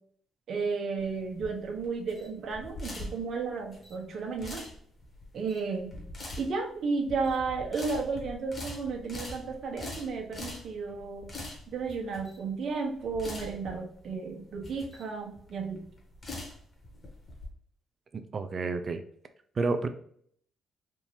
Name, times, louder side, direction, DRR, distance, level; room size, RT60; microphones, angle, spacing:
voice 1, 0.5-4.6 5.3-6.0 6.4-11.3 11.7-15.8, right 4 dB, 60° right, 2 dB, 1.1 m, -33 dB
sound 1, 1.0-17.5, left 2 dB, 35° left, 1.5 m, -43 dB
voice 2, 18.1-19.0 19.6-19.9, right 3 dB, 40° right, 9 dB, 0.5 m, -30 dB
3.7 x 2.7 x 2.9 m, 0.63 s
cardioid pair, 90°, 0 cm